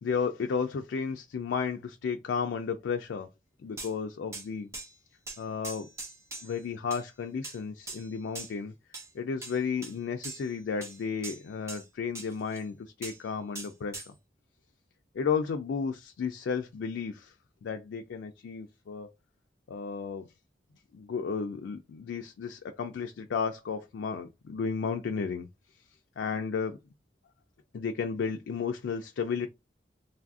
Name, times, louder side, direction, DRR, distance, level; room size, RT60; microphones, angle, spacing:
voice 1, 0.0-3.3 3.6-4.7 5.4-5.9 6.4-8.7 9.1-14.1 15.1-17.3 17.6-19.1 19.7-20.3 20.9-25.5 26.2-26.8 27.7-29.5, left 6 dB, 90° left, 0.3 m, -33 dB
sound 1, 3.8-3.9 4.3-4.5 4.7-4.9 5.3-6.6 6.9-7.1 7.4-7.6 7.9-8.5 8.9-9.1 9.4-10.0 10.2-10.5 10.8-11.9 12.1-12.6 13.0-13.2 13.5-14.1, right 3 dB, 15° right, 0.5 m, -42 dB
3.2 x 2.4 x 2.4 m
head